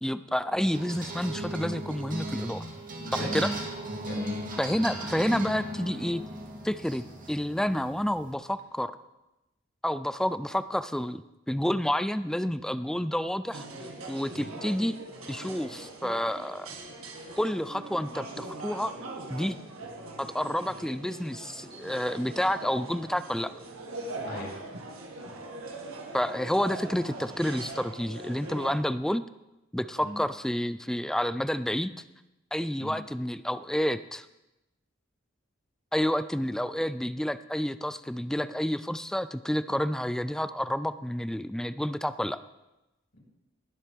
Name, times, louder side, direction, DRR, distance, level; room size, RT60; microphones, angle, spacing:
voice 1, 0.0-2.6 3.1-3.5 4.6-6.2 6.6-8.9 9.8-13.7 14.1-14.9 15.3-16.7 17.4-18.9 19.3-19.6 20.2-23.5 26.1-29.2 29.7-31.9 32.5-34.3 35.9-42.4, equal, 5° left, 13 dB, 0.3 m, -29 dB
sound 1, 0.7-8.3, right 1 dB, 45° right, 1.9 m, -37 dB
voice 2, 3.0-3.5 3.9-4.4 14.3-14.5 24.2-24.5 30.0-30.1 32.8-33.0 43.1-43.2, equal, 60° left, -3 dB, 4.8 m, -37 dB
sound 2, 13.5-28.8, right 2 dB, 85° right, 1.8 m, -41 dB
20.0 x 7.5 x 3.4 m, 0.97 s
head